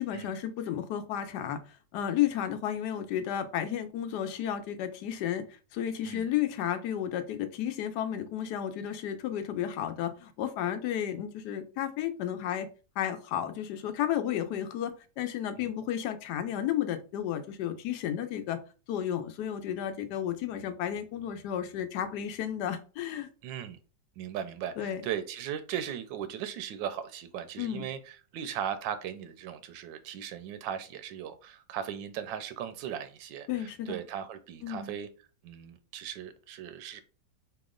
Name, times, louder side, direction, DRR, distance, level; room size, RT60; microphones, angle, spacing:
voice 1, 0.0-1.6 1.9-5.4 5.7-12.7 13.0-18.6 18.9-23.3 24.8-25.0 27.6-27.9 33.5-34.0 34.6-35.0, left 10 dB, 70° left, 1.1 m, -32 dB
voice 2, 23.4-23.8 24.2-35.1 35.4-37.0, right 9 dB, 90° right, 1.3 m, -38 dB
4.1 x 2.9 x 3.7 m
omnidirectional pair, 1.9 m